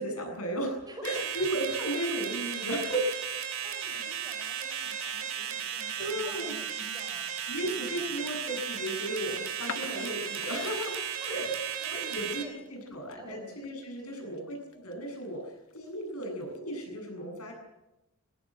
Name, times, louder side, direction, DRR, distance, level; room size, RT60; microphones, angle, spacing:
voice 1, 0.0-0.8 1.0-3.1 3.9-4.0 6.0-6.5 7.5-11.0 11.3-11.5 11.9-17.5, right 1 dB, 80° left, 3 dB, 7.7 m, -35 dB
voice 2, 0.9-1.2 3.6-7.3 7.6-8.3 11.2-11.4 11.8-12.6 13.2-13.6 14.0-14.4, right 1 dB, 20° right, 3 dB, 5.5 m, -49 dB
sound 1, 1.0-12.4, right 8 dB, 65° right, 3.2 m, -35 dB
sound 2, 9.6-15.3 15.7-16.6, left 6 dB, 65° left, 1.0 m, -45 dB
20.5 x 18.0 x 9.0 m, 0.96 s
head